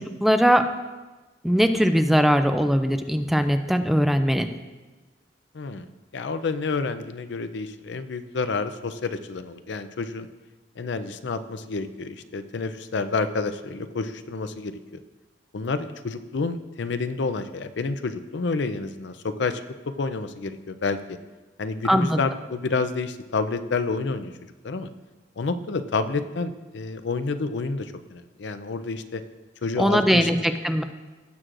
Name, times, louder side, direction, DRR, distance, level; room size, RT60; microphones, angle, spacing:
voice 1, 0.2-0.7 1.4-4.5 21.8-22.2 29.8-30.8, equal, ahead, 8 dB, 0.3 m, -20 dB
voice 2, 5.5-5.9 6.1-10.3 10.8-14.7 15.5-19.6 20.0-21.2 21.6-24.3 24.6-24.9 25.4-29.2 29.6-30.3, left 4 dB, 70° left, 11 dB, 0.5 m, -29 dB
16.0 x 6.2 x 2.5 m, 1.2 s
head